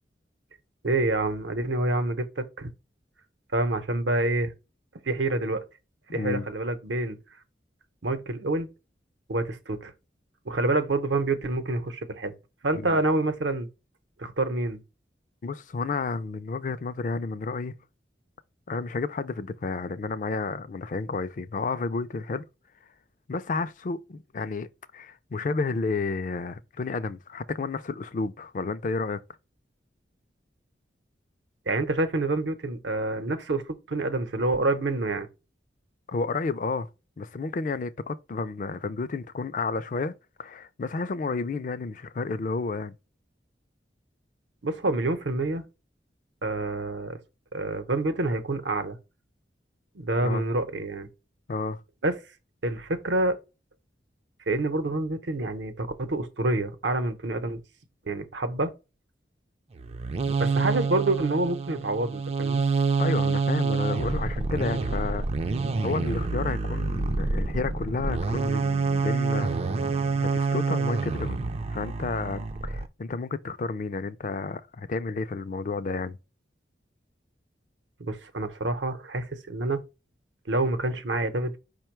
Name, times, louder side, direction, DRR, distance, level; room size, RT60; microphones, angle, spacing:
voice 1, 0.8-2.7 3.5-4.5 5.0-5.6 6.1-7.2 8.0-8.7 9.3-9.9 10.4-12.3 12.6-13.7 14.2-14.8 31.7-33.6 33.9-35.3 44.6-45.7 46.4-47.2 47.5-49.0 49.9-51.1 52.0-52.1 52.6-53.3 54.5-57.6 58.1-58.7 60.4-62.6 78.0-79.8 80.5-81.6, right 2 dB, 80° right, 0.8 m, -27 dB
voice 2, 6.1-6.5 12.7-13.0 15.4-17.7 18.7-22.5 23.3-24.7 24.9-29.2 36.1-36.9 37.2-40.1 40.4-42.9 50.2-50.4 51.5-51.8 63.0-65.3 65.8-69.6 70.2-71.4 71.7-76.2, left 4 dB, 45° left, 0.4 m, -31 dB
sound 1, 59.8-72.9, right 4 dB, 35° right, 0.3 m, -27 dB
5.2 x 2.2 x 4.4 m
head